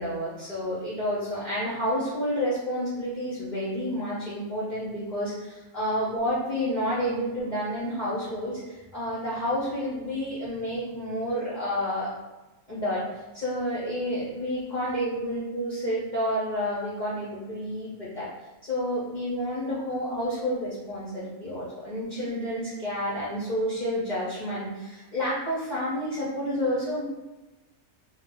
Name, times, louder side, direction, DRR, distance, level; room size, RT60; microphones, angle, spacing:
voice 1, 0.0-12.1 12.7-18.3 18.6-27.0, equal, 55° left, -9 dB, 0.5 m, -30 dB
2.4 x 2.0 x 2.8 m, 1.1 s
omnidirectional pair, 1.5 m